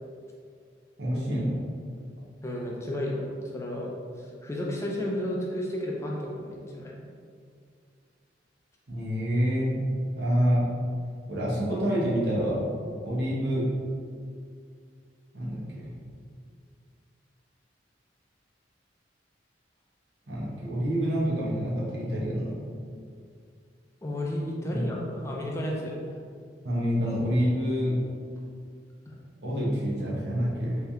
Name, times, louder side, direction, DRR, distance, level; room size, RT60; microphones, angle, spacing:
voice 1, 1.0-1.6 8.9-9.8 10.2-10.7 11.3-12.6 13.0-13.7 15.3-15.9 20.3-22.5 24.7-24.8 26.6-28.0 29.4-30.8, equal, 65° right, -6 dB, 1.0 m, -27 dB
voice 2, 2.4-3.9 4.2-6.9 24.0-26.0 29.1-29.2, left 1 dB, 15° left, -3 dB, 0.4 m, -32 dB
3.3 x 2.7 x 3.5 m, 2.2 s
head